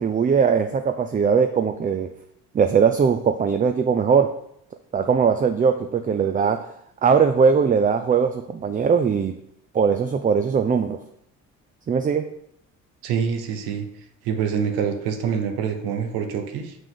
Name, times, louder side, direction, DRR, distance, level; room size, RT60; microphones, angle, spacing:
voice 1, 0.0-2.1 2.5-4.3 4.9-6.6 7.0-9.4 9.7-11.0 11.9-12.2, right 6 dB, 25° right, 7 dB, 0.4 m, -20 dB
voice 2, 13.0-13.9 14.2-16.8, right 7 dB, 90° right, 6 dB, 0.9 m, -25 dB
6.0 x 5.1 x 3.7 m, 0.73 s
supercardioid pair, 85°, 35 cm